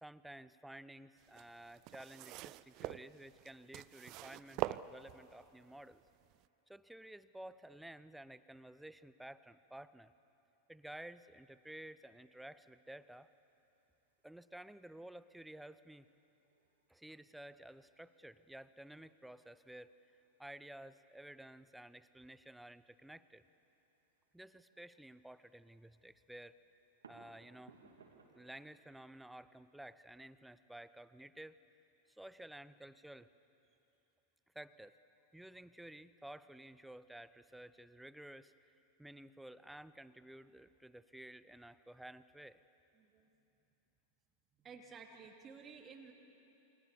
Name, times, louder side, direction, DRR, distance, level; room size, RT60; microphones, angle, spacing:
voice 1, 0.0-6.0 6.7-10.1 10.7-13.3 14.2-16.1 16.9-23.4 24.3-26.6 27.1-27.7 28.3-31.6 32.1-33.3 34.5-35.0 35.3-38.7 39.0-42.6, right 1 dB, 5° right, 15 dB, 0.8 m, -53 dB
sound 1, 1.2-5.5 6.2-6.3, right 18 dB, 40° right, 0.5 m, -43 dB
sound 2, 11.0-29.0, right 4 dB, 70° right, 3.3 m, -70 dB
voice 2, 43.0-43.3 44.6-46.1, right 5 dB, 25° right, 3 dB, 2.5 m, -54 dB
28.5 x 24.5 x 7.1 m, 2.9 s
figure-of-eight pair, 90°, 0 cm